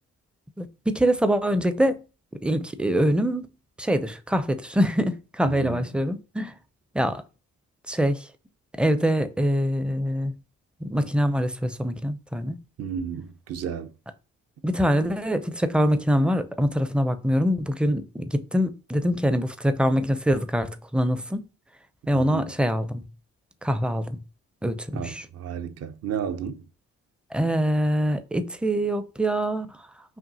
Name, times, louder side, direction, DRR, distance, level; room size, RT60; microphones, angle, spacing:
voice 1, 0.6-2.0 2.4-3.5 3.8-6.5 6.9-7.2 7.9-8.3 8.8-10.3 10.8-12.6 14.6-21.4 22.1-23.0 23.6-24.2 24.6-25.3 27.3-29.7, equal, 5° right, 0.4 m, -24 dB
voice 2, 5.4-5.8 12.8-13.9 22.1-22.6 24.9-26.7, right 7 dB, 55° right, 0.6 m, -32 dB
5.7 x 2.4 x 2.7 m
cardioid pair, 90°, 30 cm